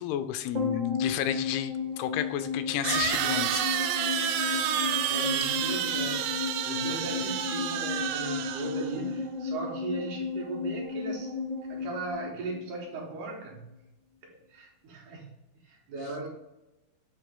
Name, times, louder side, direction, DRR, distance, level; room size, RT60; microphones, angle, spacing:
voice 1, 0.0-3.9 4.5-4.7, left 10 dB, 85° left, 10 dB, 2.5 m, -32 dB
sound 1, 0.5-13.1 13.3-13.4, left 5 dB, 50° right, 0.8 m, -34 dB
sound 2, 1.2-1.3 2.8-9.0, right 9 dB, 85° right, 2.5 m, -29 dB
voice 2, 5.1-11.3 11.7-13.7 14.2-15.3 15.6-16.3, right 3 dB, 70° right, -1 dB, 2.1 m, -37 dB
8.3 x 3.2 x 3.6 m, 1.0 s
omnidirectional pair, 4.4 m